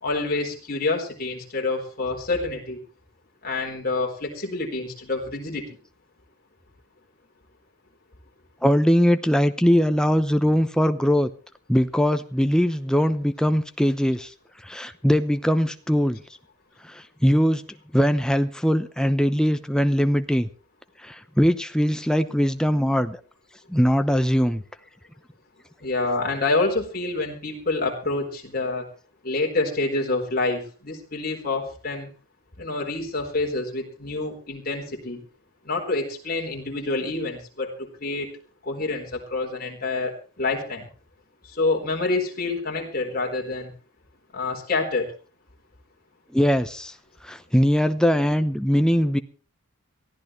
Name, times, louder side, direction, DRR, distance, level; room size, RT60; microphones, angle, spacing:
voice 1, 0.0-2.8 3.4-5.8 25.8-28.8 29.2-32.1 32.6-35.2 35.7-38.3 38.7-40.8 41.5-43.7 44.3-45.1, left 3 dB, 40° left, 1 dB, 4.1 m, -27 dB
voice 2, 8.6-11.3 11.7-14.3 14.6-16.2 16.8-17.6 17.9-20.5 21.0-23.2 23.7-24.6 46.3-46.9 47.2-49.2, equal, 5° left, 9 dB, 0.8 m, -21 dB
23.0 x 14.5 x 3.2 m, 0.37 s
head